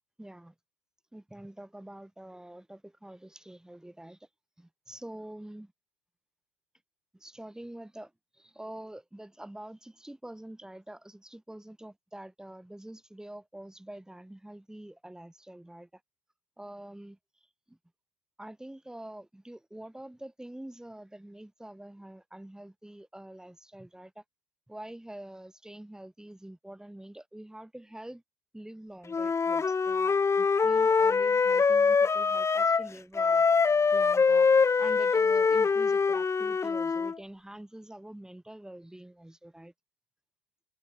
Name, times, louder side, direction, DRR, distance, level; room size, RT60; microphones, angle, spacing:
voice 1, 0.2-0.5 1.1-4.2 4.6-5.7 7.1-8.1 8.4-16.0 16.6-17.2 17.7-17.8 18.4-24.2 24.7-28.2 28.5-33.4 33.9-34.5 34.8-39.7, right 1 dB, 5° right, 5.5 m, -46 dB
Wind instrument woodwind instrument, 29.1-32.9 33.2-37.2, left 5 dB, 20° left, 1.0 m, -24 dB
hypercardioid pair, 95°, 14 cm